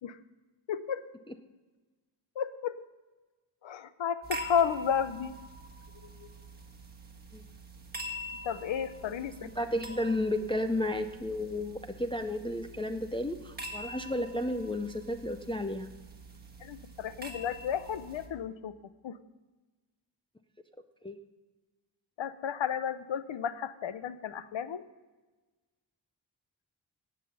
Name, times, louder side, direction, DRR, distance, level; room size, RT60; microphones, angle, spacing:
voice 1, 0.7-1.1 2.4-2.8 3.6-5.4 6.0-6.3 8.4-9.4 16.6-18.7 19.0-19.2 22.2-24.9, left 8 dB, 70° left, 13 dB, 0.8 m, -33 dB
sound 1, 4.2-18.3, right 1 dB, 20° right, 1.5 m, -45 dB
voice 2, 9.4-15.9 21.0-21.2, left 1 dB, 10° left, 5 dB, 0.5 m, -32 dB
18.0 x 7.4 x 5.5 m, 1.2 s
wide cardioid pair, 175°, 47 cm